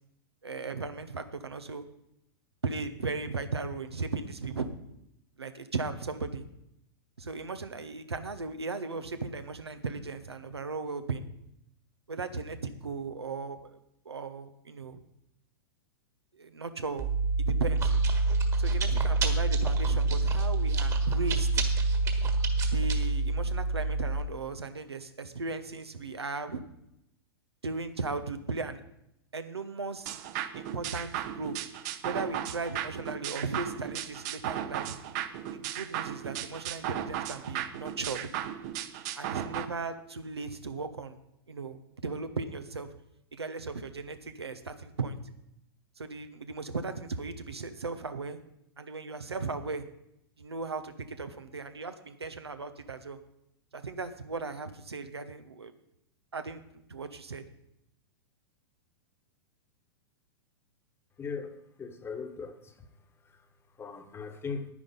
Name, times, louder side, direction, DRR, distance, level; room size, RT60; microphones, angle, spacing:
voice 1, 0.4-1.8 2.6-4.7 5.4-6.4 7.2-11.2 12.1-13.8 14.0-15.0 16.3-17.1 17.4-17.9 18.6-21.6 22.7-26.6 27.6-28.8 29.3-30.2 30.5-31.6 32.0-34.9 35.5-38.2 39.2-41.2 41.5-42.9 43.3-45.2 46.0-48.4 48.8-49.8 50.4-53.2 53.7-55.7 56.3-57.4, right 4 dB, 85° right, 9 dB, 1.1 m, -37 dB
Chewing mastication, 17.0-24.2, right 3 dB, 25° right, 1.6 m, -26 dB
sound 1, 30.1-39.7, right 11 dB, 45° right, 0.9 m, -36 dB
voice 2, 61.2-62.9 63.2-64.7, left 5 dB, 20° left, 9 dB, 1.2 m, -40 dB
10.5 x 10.0 x 5.4 m, 0.80 s
figure-of-eight pair, 105°, 13 cm